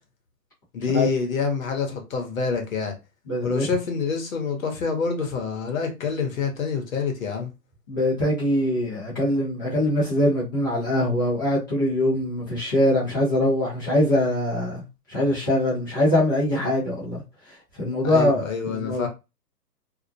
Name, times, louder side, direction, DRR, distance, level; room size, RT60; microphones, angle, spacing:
voice 1, 0.7-2.9 3.4-7.5 18.0-19.1, left 5 dB, 55° left, 1.0 m, -27 dB
voice 2, 3.3-3.6 7.9-14.8 15.1-17.2 17.7-19.1, left 1 dB, 15° left, 0.5 m, -23 dB
2.4 x 2.1 x 2.6 m
hypercardioid pair, 145°, 49 cm